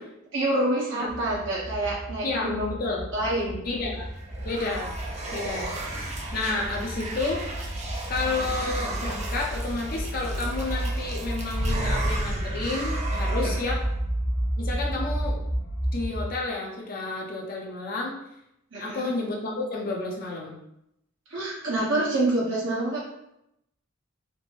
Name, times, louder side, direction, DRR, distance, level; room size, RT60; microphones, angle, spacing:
voice 1, 0.3-2.8 3.1-3.6 13.4-13.5 18.7-19.1 21.3-23.0, right 1 dB, 65° right, -6 dB, 1.3 m, -27 dB
sound 1, 1.1-16.3, right 1 dB, 70° left, 1.5 m, -32 dB
voice 2, 2.2-3.0 3.6-4.1 4.4-5.0 5.3-5.7 6.3-7.4 8.1-13.8 14.6-15.4 15.9-18.2 18.8-20.6, left 3 dB, 45° left, -1 dB, 0.6 m, -31 dB
sound 2, 3.9-13.9, right 1 dB, 35° right, 0.5 m, -34 dB
4.3 x 2.1 x 3.0 m, 0.80 s
head